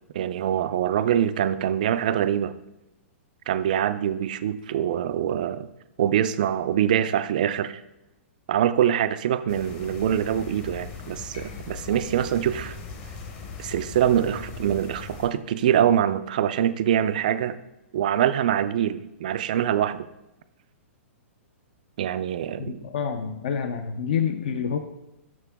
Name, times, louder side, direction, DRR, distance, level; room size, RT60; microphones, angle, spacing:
voice 1, 0.1-2.5 3.5-5.7 6.0-7.8 8.5-12.8 13.6-17.6 17.9-20.1 22.0-22.8, right 10 dB, 35° right, 13 dB, 0.4 m, -24 dB
sound 1, 9.5-15.3, left 4 dB, 20° left, 0.8 m, -39 dB
voice 2, 22.6-24.8, left 7 dB, 45° left, 7 dB, 0.5 m, -27 dB
12.5 x 4.5 x 3.5 m, 0.92 s
hypercardioid pair, 180°, 7 cm